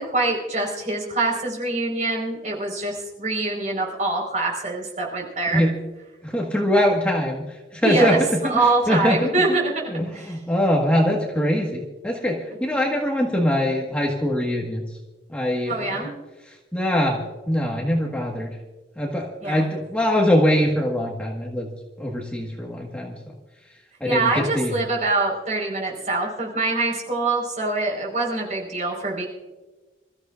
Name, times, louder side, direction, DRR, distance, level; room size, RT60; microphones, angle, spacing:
voice 1, 0.0-5.6 7.8-9.7 10.1-10.4 15.7-16.1 19.4-19.6 24.0-29.2, right 3 dB, 45° right, -1 dB, 4.7 m, -24 dB
voice 2, 6.2-8.2 8.4-9.6 9.9-14.8 15.3-16.1 16.5-17.2 17.5-18.5 19.0-21.7 22.0-23.2 24.0-24.8, left 1 dB, 5° left, -2 dB, 1.6 m, -23 dB
27.0 x 14.5 x 2.5 m, 1.2 s
head